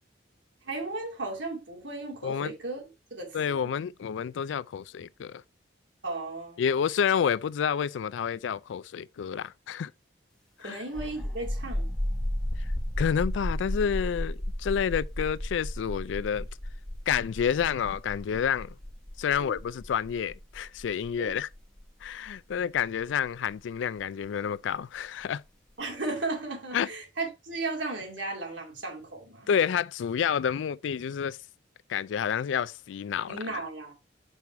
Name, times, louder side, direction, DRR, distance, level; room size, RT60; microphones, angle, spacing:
voice 1, 0.6-2.8 3.1-3.7 6.0-6.6 10.6-11.9 19.3-19.6 21.2-21.4 25.8-29.5 33.3-33.9, right 3 dB, 85° right, 2.5 m, -35 dB
voice 2, 2.2-2.5 3.3-5.4 6.6-9.9 10.6-10.8 13.0-16.5 17.1-18.8 19.2-21.5 22.0-25.4 26.7-26.9 29.5-31.4 31.9-33.6, left 7 dB, 85° left, 0.3 m, -29 dB
sound 1, 10.9-24.3, left 1 dB, 5° left, 0.8 m, -34 dB
5.4 x 4.7 x 4.3 m
head